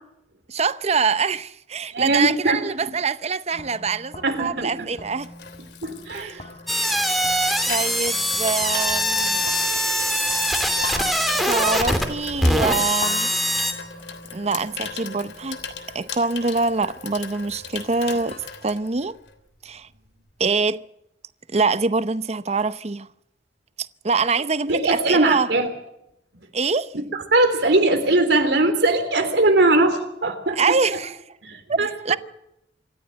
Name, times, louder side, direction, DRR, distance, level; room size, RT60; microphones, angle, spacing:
voice 1, 0.5-5.3 6.1-6.4 7.7-9.5 11.5-13.6 14.3-15.6 15.9-19.2 19.6-19.9 20.4-20.8 21.5-23.1 23.8-25.5 26.5-26.9 30.6-31.2 31.7-32.2, right 4 dB, 35° right, 0.7 m, -24 dB
voice 2, 1.9-2.9 4.2-4.9 5.8-6.4 24.7-25.7 27.1-30.8 31.4-31.9, right 2 dB, 70° right, 3.5 m, -20 dB
sound 1, 3.5-18.4, left 2 dB, 35° left, 3.8 m, -41 dB
Water tap faucet / Sink (filling or washing), 4.5-19.5 19.8-20.1, left 5 dB, 65° left, 3.1 m, -38 dB
sound 2, 6.7-13.7, equal, ahead, 2.8 m, -22 dB
26.0 x 14.0 x 7.7 m
head